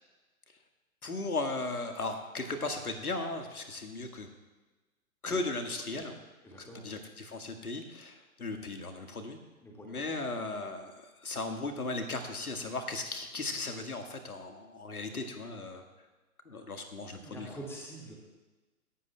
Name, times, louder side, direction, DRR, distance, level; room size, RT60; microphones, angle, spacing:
voice 1, 1.0-4.3 5.2-6.2 6.6-9.4 9.8-15.8 16.5-17.5, left 3 dB, 80° left, 5 dB, 1.7 m, -37 dB
voice 2, 6.4-6.9 9.6-10.0 17.1-18.2, right 1 dB, 5° left, -1 dB, 1.9 m, -45 dB
17.0 x 12.0 x 2.2 m, 1.2 s
figure-of-eight pair, 125°, 43 cm